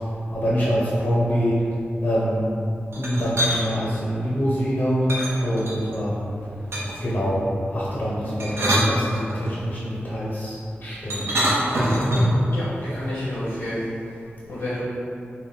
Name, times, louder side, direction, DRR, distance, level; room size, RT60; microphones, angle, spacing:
voice 1, 0.3-1.6 2.0-2.4 3.0-5.0 5.4-6.4 7.0-11.3, equal, 50° left, -7 dB, 0.6 m, -25 dB
sound 1, 2.9-3.6 5.1-6.0 6.7-7.1 8.2-9.6 11.1-12.4, equal, 85° right, 0.7 m, -23 dB
voice 2, 12.5-13.8 14.5-14.8, left 1 dB, 85° left, -11 dB, 0.8 m, -30 dB
3.8 x 2.2 x 3.6 m, 2.7 s
wide cardioid pair, 115°, 4 cm